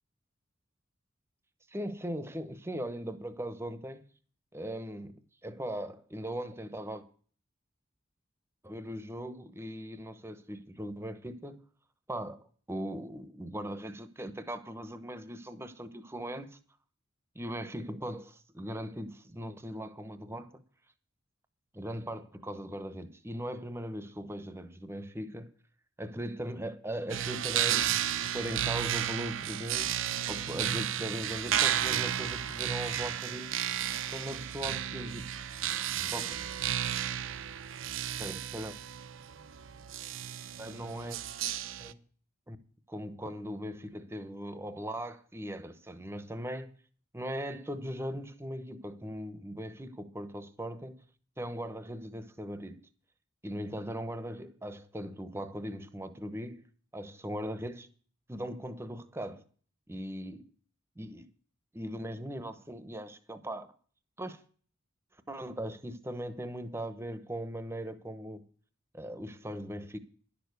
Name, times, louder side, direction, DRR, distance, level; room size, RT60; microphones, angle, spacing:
voice 1, 1.7-4.0 4.5-7.0 8.6-11.6 12.1-16.6 17.3-20.6 21.7-25.5 26.0-27.9 28.3-30.0 30.3-33.6 34.1-35.2 36.0-36.4 38.2-38.8 40.6-41.2 41.8-42.0 42.5-42.6 42.9-46.7 47.1-51.0 51.4-52.9 53.4-56.6 56.9-57.9 58.3-59.4 59.9-60.4 61.0-61.3 61.7-63.7 64.2-64.4 65.3-68.4 68.9-70.0, equal, 10° right, 0.9 m, -39 dB
sound 1, 27.1-41.9, right 10 dB, 70° right, 0.6 m, -33 dB
11.0 x 6.8 x 8.1 m
head